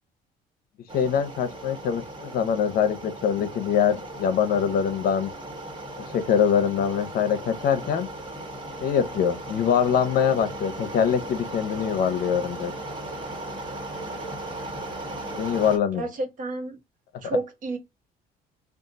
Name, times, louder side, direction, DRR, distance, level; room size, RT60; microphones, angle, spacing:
voice 1, 0.9-5.3 6.1-8.1 8.8-12.7 15.3-16.1, left 8 dB, 65° left, 0.7 m, -24 dB
sound 1, 0.9-15.8, right 1 dB, 30° right, 1.4 m, -37 dB
voice 2, 15.9-16.8 17.2-17.8, right 2 dB, 50° right, 1.1 m, -30 dB
3.7 x 2.4 x 3.9 m
cardioid pair, 110°, 17 cm